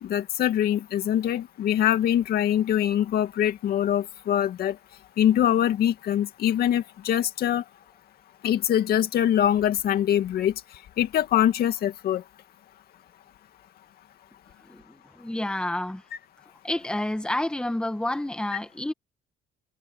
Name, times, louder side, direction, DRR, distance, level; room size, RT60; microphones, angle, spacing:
voice 1, 0.0-4.8 5.2-7.6 8.4-10.5 11.0-12.2, left 11 dB, 65° left, 2.4 m, -23 dB
voice 2, 14.7-16.0 16.6-18.9, left 1 dB, 5° left, 1.9 m, -29 dB
cardioid pair, 110°, 17 cm